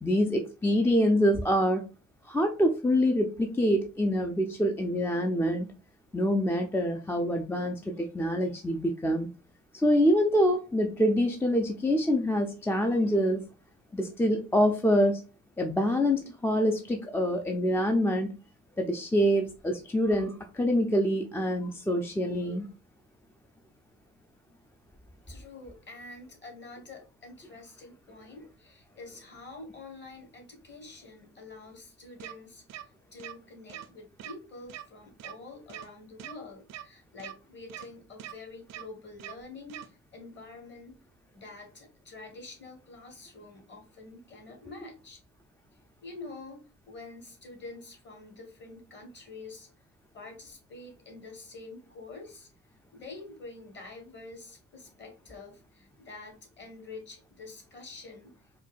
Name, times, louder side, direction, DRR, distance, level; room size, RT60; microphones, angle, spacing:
voice 1, 0.0-1.8 2.3-5.7 6.1-9.3 9.7-13.4 13.9-15.2 15.6-18.3 18.8-22.7, equal, 10° left, 4 dB, 0.4 m, -25 dB
voice 2, 25.3-32.6 33.1-39.8 40.1-40.9 41.3-45.2 46.0-49.7 50.1-52.5 52.9-58.3, left 3 dB, 35° left, 3 dB, 1.5 m, -47 dB
sound 1, 32.2-32.3 32.7-32.8 33.2-33.3 33.7-33.9 34.2-34.3 34.7-34.8 35.2-35.3 35.7-35.9 36.2-36.3 36.7-36.8 37.2-37.3 37.7-37.9 38.2-38.3 38.7-38.8 39.2-39.3 39.7-39.9, right 12 dB, 60° right, 0.5 m, -41 dB
4.4 x 2.2 x 2.4 m, 0.34 s
cardioid pair, 90°, 30 cm